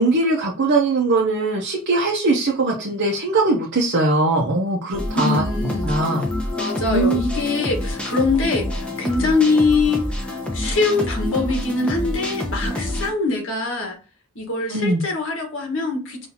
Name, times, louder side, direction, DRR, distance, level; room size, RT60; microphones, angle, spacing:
voice 1, 0.0-5.4 5.9-6.2 6.9-7.2 14.7-15.0, right 2 dB, 55° right, -2 dB, 0.8 m, -20 dB
sound 1, 4.9-13.1, left 1 dB, 5° left, 0.8 m, -27 dB
voice 2, 5.1-5.9 6.6-14.0 14.3-16.3, left 3 dB, 60° left, 2 dB, 1.5 m, -23 dB
5.5 x 2.7 x 2.9 m, 0.35 s
head